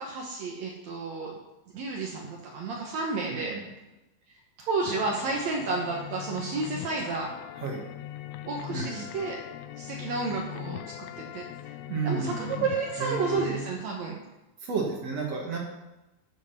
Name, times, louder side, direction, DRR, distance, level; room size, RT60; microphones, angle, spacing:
voice 1, 0.0-1.4 1.7-3.6 4.6-7.3 8.4-9.4 9.8-11.1 11.3-11.4 12.0-14.2, right 3 dB, 70° right, -1 dB, 1.7 m, -31 dB
voice 2, 3.3-3.6 7.6-7.8 8.7-9.1 11.9-12.7 13.0-13.7 14.6-15.6, right 5 dB, 50° right, 0 dB, 2.2 m, -32 dB
sound 1, 4.9-13.5, left 12 dB, 85° left, 2.6 m, -40 dB
13.5 x 7.6 x 5.9 m, 1.0 s
omnidirectional pair, 5.0 m